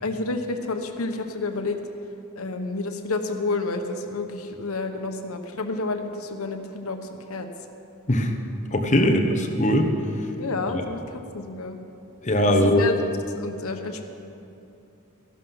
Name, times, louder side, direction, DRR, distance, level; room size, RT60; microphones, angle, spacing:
voice 1, 0.0-1.8 2.4-7.5 9.0-9.2 10.4-11.8 12.6-13.0 13.3-14.0, left 3 dB, 80° left, 6 dB, 1.1 m, -30 dB
voice 2, 8.7-9.9 12.2-12.8, left 1 dB, 35° left, 4 dB, 1.0 m, -20 dB
14.5 x 11.5 x 5.6 m, 2.8 s
head